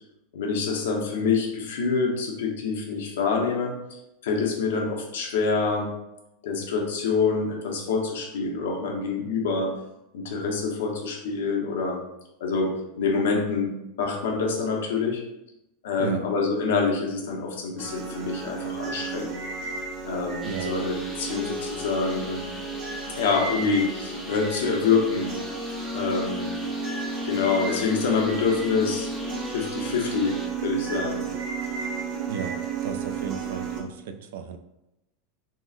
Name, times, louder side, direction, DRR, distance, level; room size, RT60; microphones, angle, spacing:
voice 1, 0.3-3.7 4.2-5.9 6.4-9.7 10.1-12.0 12.4-15.2 15.8-19.3 20.0-22.4 23.2-25.3 25.9-26.6 27.2-29.1 29.5-30.4 30.6-31.3, left 4 dB, 90° left, 1 dB, 0.7 m, -26 dB
sound 1, 17.8-33.8, right 3 dB, 45° right, 0.6 m, -33 dB
sound 2, 20.4-30.5, equal, ahead, 0.4 m, -43 dB
voice 2, 20.4-20.8 32.3-34.6, right 7 dB, 75° right, 7 dB, 0.3 m, -34 dB
3.7 x 2.0 x 2.4 m, 0.88 s
supercardioid pair, 165°, 0 cm